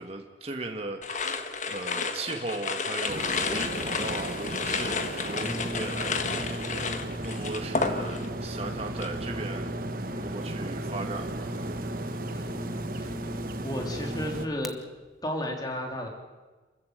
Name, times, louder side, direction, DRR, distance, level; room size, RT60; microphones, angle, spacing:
voice 1, 0.0-1.4 1.7-6.6 7.2-9.7 10.2-11.7, right 2 dB, 35° right, 3 dB, 1.7 m, -37 dB
sound 1, 1.0-8.4 8.7-9.2, left 4 dB, 40° left, 1.5 m, -31 dB
sound 2, 3.1-14.5, right 2 dB, 50° right, 1.3 m, -36 dB
Brass instrument, 5.4-14.7, equal, ahead, 0.9 m, -38 dB
voice 2, 12.3-12.7 12.9-13.1 13.6-14.8 15.2-16.1, left 1 dB, 20° left, 2 dB, 3.3 m, -33 dB
28.0 x 14.5 x 8.0 m, 1.2 s
head